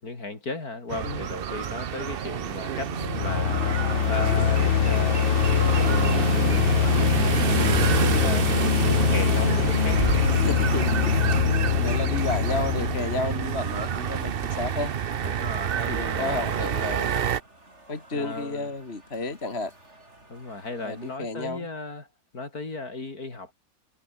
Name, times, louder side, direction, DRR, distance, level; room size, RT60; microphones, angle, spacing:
voice 1, 0.0-5.4 5.8-8.5 8.9-10.0 15.2-16.6 18.1-18.7 20.3-22.1 22.3-23.5, left 3 dB, 50° left, 4.5 m, -36 dB
sound 1, 0.9-17.4, right 8 dB, 85° right, 0.5 m, -27 dB
sound 2, 2.8-13.9, left 12 dB, 85° left, 1.7 m, -24 dB
sound 3, 9.9-21.2, right 1 dB, 35° right, 6.8 m, -53 dB
voice 2, 10.3-11.4 11.7-14.9 15.9-17.2 17.9-19.7 20.8-21.7, left 2 dB, 30° left, 3.0 m, -32 dB
omnidirectional pair, 2.0 m